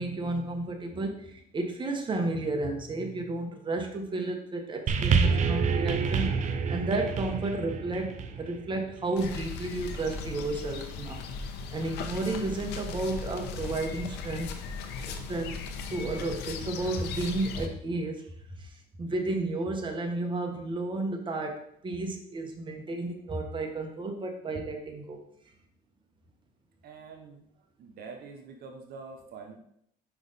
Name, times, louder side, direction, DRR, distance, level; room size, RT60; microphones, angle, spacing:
voice 1, 0.0-6.3 6.7-11.2 11.7-14.5 15.1-15.6 15.9-18.2 18.6-18.7 19.0-25.2, right 2 dB, 30° right, 3 dB, 1.1 m, -32 dB
sound 1, 4.9-9.4 10.2-10.3, right 5 dB, 45° right, 0.7 m, -28 dB
sound 2, 9.2-17.7, left 4 dB, 85° left, 0.9 m, -38 dB
voice 2, 26.8-27.4 27.8-29.6, right 4 dB, 70° right, 4 dB, 1.0 m, -45 dB
5.7 x 5.3 x 4.1 m, 0.69 s
cardioid pair, 110°, 17 cm